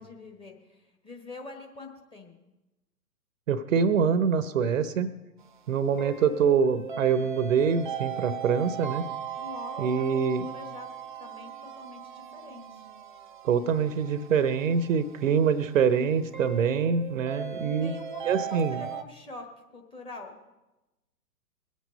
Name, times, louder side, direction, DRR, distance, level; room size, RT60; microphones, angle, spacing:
voice 1, 0.0-2.3 9.4-10.9 11.2-12.9 17.7-20.3, left 2 dB, 10° left, 2 dB, 1.1 m, -44 dB
voice 2, 3.5-5.1 5.7-9.0 9.8-10.5 13.4-17.9 18.3-18.8, right 6 dB, 50° right, 14 dB, 0.8 m, -25 dB
sound 1, 5.4-19.0, right 8 dB, 35° right, 0.4 m, -38 dB
21.0 x 8.4 x 5.2 m, 1.0 s
figure-of-eight pair, 125°, 49 cm